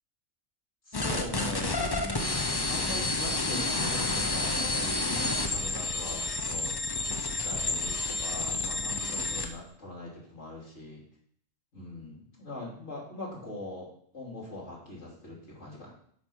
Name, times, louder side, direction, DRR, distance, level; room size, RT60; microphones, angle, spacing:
voice 1, 0.9-6.8 7.3-11.0 11.7-13.9 14.1-15.9, left 1 dB, 60° left, -4 dB, 3.0 m, -41 dB
sound 1, 0.9-9.5, left 2 dB, 25° left, 0.5 m, -30 dB
8.1 x 4.6 x 5.5 m, 0.63 s
omnidirectional pair, 1.3 m